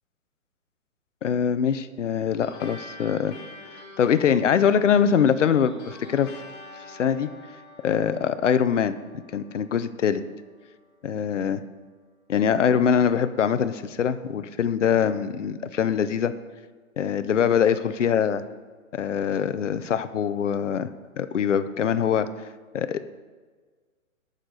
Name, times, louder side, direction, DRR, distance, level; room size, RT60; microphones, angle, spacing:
voice 1, 1.2-3.3 4.0-6.3 6.9-7.3 7.8-8.9 9.3-10.2 11.0-11.6 12.3-16.3 17.0-18.4 18.9-20.9 21.2-22.3 22.7-23.0, left 8 dB, 60° left, 12 dB, 0.8 m, -23 dB
sound 1, 2.4-11.2, left 2 dB, 30° left, 2.7 m, -46 dB
20.0 x 6.7 x 3.9 m, 1.5 s
hypercardioid pair, 170°, 42 cm